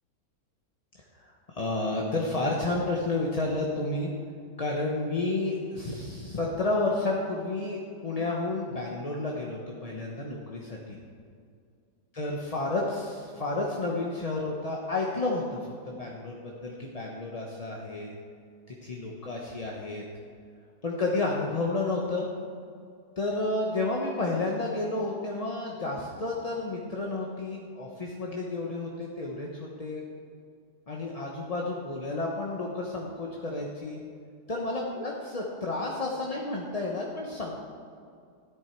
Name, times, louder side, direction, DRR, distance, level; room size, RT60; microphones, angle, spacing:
voice 1, 1.1-4.1 4.6-11.0 12.1-15.6 15.9-18.1 18.7-20.0 20.8-22.3 23.2-30.0 30.9-34.0 34.5-37.6, left 2 dB, 30° left, -2 dB, 0.8 m, -31 dB
13.5 x 11.0 x 4.5 m, 2.3 s
omnidirectional pair, 1.8 m